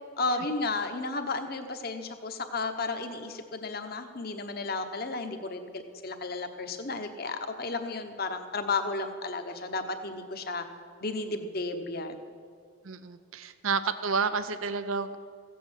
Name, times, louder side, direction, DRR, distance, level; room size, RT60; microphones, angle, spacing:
voice 1, 0.2-10.7 11.0-12.2, left 3 dB, 50° left, 7 dB, 1.1 m, -33 dB
voice 2, 12.8-15.2, right 5 dB, 80° right, 12 dB, 0.6 m, -30 dB
15.5 x 8.4 x 7.5 m, 2.2 s
head